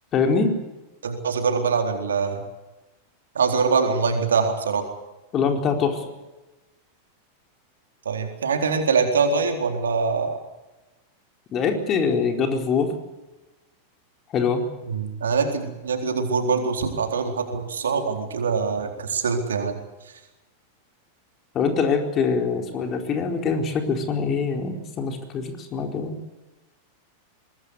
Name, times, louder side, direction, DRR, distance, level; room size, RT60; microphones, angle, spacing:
voice 1, 0.1-0.5 5.3-6.0 11.5-12.9 14.3-14.6 21.5-26.2, left 5 dB, 30° left, 4 dB, 4.4 m, -23 dB
voice 2, 1.0-2.4 3.3-4.9 8.0-10.4 14.9-19.8, right 5 dB, 65° right, 4 dB, 4.1 m, -23 dB
24.0 x 21.0 x 8.2 m, 1.1 s
figure-of-eight pair, 90°, 0 cm